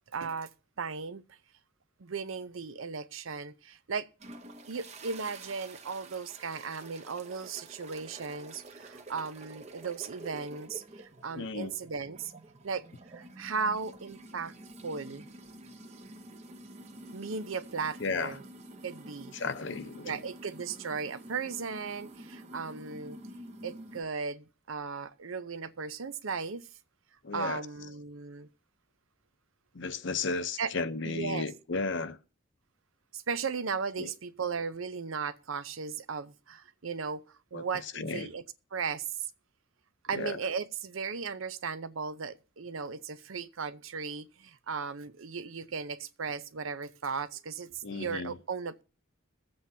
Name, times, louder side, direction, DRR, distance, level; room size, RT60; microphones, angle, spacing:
voice 1, 0.1-0.5 0.8-1.4 2.0-4.1 4.7-12.3 12.6-12.8 13.1-14.5 14.8-15.3 17.1-18.4 18.8-19.4 20.0-23.2 23.6-26.7 27.3-28.5 30.6-30.7 31.0-31.5 33.1-37.2 37.5-38.4 38.7-39.2 40.0-48.8, right 5 dB, 80° right, 0.7 m, -36 dB
sound 1, 4.2-24.0, right 2 dB, 35° right, 0.9 m, -49 dB
voice 2, 11.4-11.7 18.0-18.4 19.3-20.2 27.2-27.6 29.7-32.2 34.0-34.1 37.5-37.6 37.9-38.3 40.1-40.4 47.8-48.4, left 4 dB, 60° left, 0.8 m, -34 dB
21.5 x 7.9 x 2.8 m
head